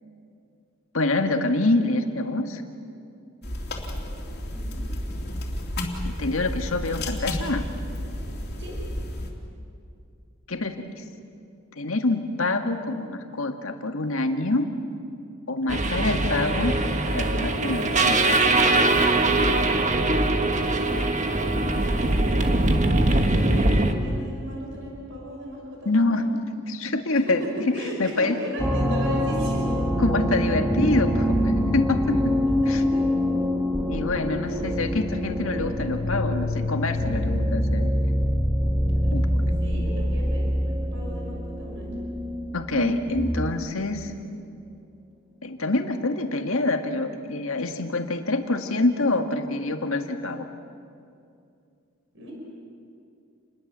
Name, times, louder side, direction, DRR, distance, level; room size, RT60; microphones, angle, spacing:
voice 1, 0.9-2.6 6.0-7.7 10.5-11.0 11.8-14.7 15.5-16.8 17.1-18.4 25.9-26.3 26.7-27.7 28.0-28.4 30.0-32.3 32.7-32.8 33.5-33.6 33.9-37.9 39.1-39.4 42.5-44.1 45.4-50.5, left 2 dB, 80° left, 5 dB, 1.9 m, -26 dB
sound 1, 3.4-9.3, left 1 dB, 50° left, 3.4 m, -32 dB
voice 2, 4.5-4.8 8.6-8.8 23.2-26.5 27.3-29.7 32.6-33.0 34.5-34.7 38.9-39.3 39.6-42.0 52.1-52.3, equal, 60° right, -1 dB, 6.1 m, -36 dB
sound 2, 15.7-23.9, right 2 dB, 35° right, 1.5 m, -22 dB
sound 3, 28.6-43.6, equal, 5° right, 2.4 m, -25 dB
29.0 x 21.0 x 7.6 m, 2.5 s
head